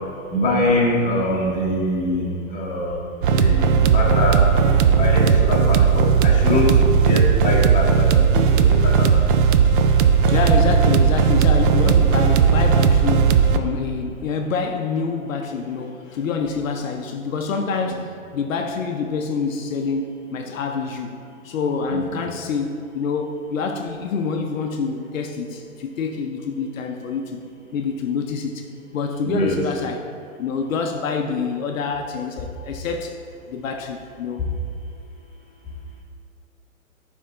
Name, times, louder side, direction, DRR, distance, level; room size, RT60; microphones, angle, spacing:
voice 1, 0.3-2.9 3.3-4.4 4.9-9.1 21.9-22.2 29.2-29.6, left 1 dB, 20° left, -4 dB, 1.3 m, -24 dB
sound 1, 3.2-13.6, right 6 dB, 40° right, 0.4 m, -16 dB
voice 2, 10.3-21.2 21.4-27.4 27.7-28.7 28.9-30.0 30.4-33.2 33.5-34.4, left 5 dB, 70° left, 4 dB, 0.7 m, -26 dB
9.3 x 3.6 x 3.7 m, 2.5 s
hypercardioid pair, 125°, 41 cm